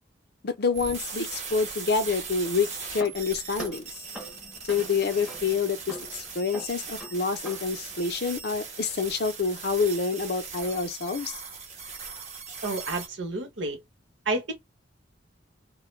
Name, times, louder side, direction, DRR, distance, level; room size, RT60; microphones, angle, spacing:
voice 1, 0.4-3.8 4.6-11.4, left 5 dB, 60° left, 0.5 m, -27 dB
sound 1, 0.7-13.1, right 5 dB, 40° right, 1.0 m, -39 dB
sound 2, 2.2-8.0, equal, 5° right, 0.8 m, -44 dB
voice 2, 12.6-13.8 14.3-14.5, right 2 dB, 90° right, 1.0 m, -30 dB
2.2 x 2.1 x 3.1 m
head